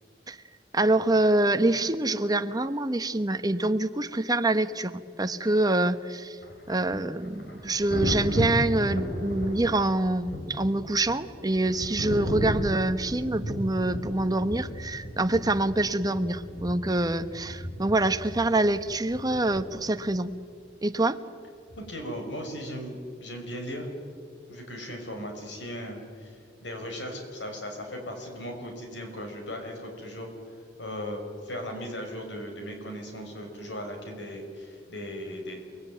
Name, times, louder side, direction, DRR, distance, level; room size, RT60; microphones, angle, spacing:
voice 1, 0.7-6.4 6.7-20.3 20.8-21.2, right 2 dB, 20° right, 10 dB, 1.0 m, -25 dB
Thunder, 6.4-20.1 21.7-21.9, equal, 65° left, 4.4 m, -35 dB
voice 2, 21.8-23.9 24.5-30.3 30.8-35.6, equal, 85° left, 3 dB, 5.7 m, -37 dB
29.5 x 21.0 x 9.4 m, 2.2 s
head